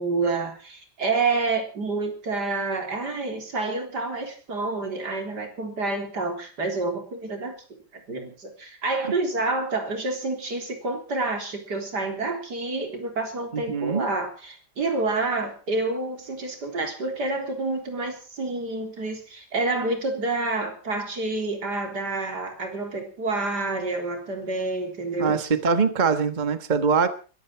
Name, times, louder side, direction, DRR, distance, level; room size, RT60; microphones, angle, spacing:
voice 1, 0.0-7.5 8.1-25.5, right 3 dB, 75° right, 4 dB, 4.3 m, -28 dB
voice 2, 13.5-14.1 25.2-27.1, right 5 dB, 30° right, 10 dB, 1.4 m, -23 dB
21.5 x 15.0 x 4.6 m, 0.38 s
omnidirectional pair, 1.8 m